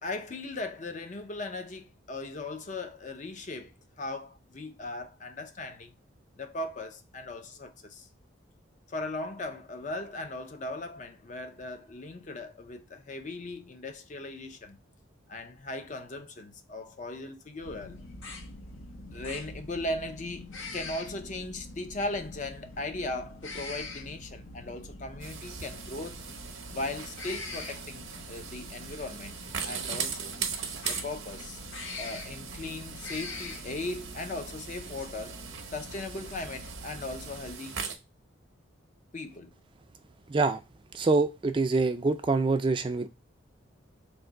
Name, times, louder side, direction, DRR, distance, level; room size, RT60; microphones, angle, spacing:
voice 1, 0.0-5.9 6.4-8.1 8.9-14.8 15.3-18.0 19.1-26.2 26.7-29.4 29.6-30.4 30.9-31.6 32.0-35.4 35.7-37.8 39.1-39.6, left 2 dB, 35° left, 0.5 m, -38 dB
sound 1, 17.6-37.5, left 2 dB, 75° left, 0.7 m, -44 dB
sound 2, 25.2-37.9, right 7 dB, 75° right, 0.7 m, -40 dB
voice 2, 40.3-40.6 40.9-43.1, right 3 dB, 25° right, 0.3 m, -25 dB
3.4 x 2.6 x 3.8 m
head